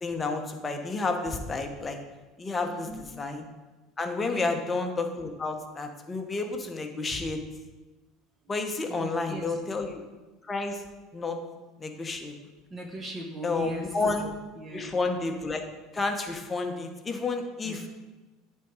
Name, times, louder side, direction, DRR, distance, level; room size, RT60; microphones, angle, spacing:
voice 1, 0.0-2.0 2.4-2.9 3.2-3.4 4.0-7.4 8.5-10.0 10.5-10.8 11.1-11.4 11.8-12.3 13.4-14.3 14.7-15.6 15.9-17.8, left 3 dB, 20° left, 4 dB, 0.9 m, -30 dB
voice 2, 2.6-3.1 4.2-4.5 8.9-9.6 11.9-12.0 12.7-14.0 14.5-15.0 17.6-17.9, right 1 dB, 25° right, 1 dB, 1.1 m, -39 dB
9.1 x 3.7 x 4.8 m, 1.2 s
supercardioid pair, 115°, 0 cm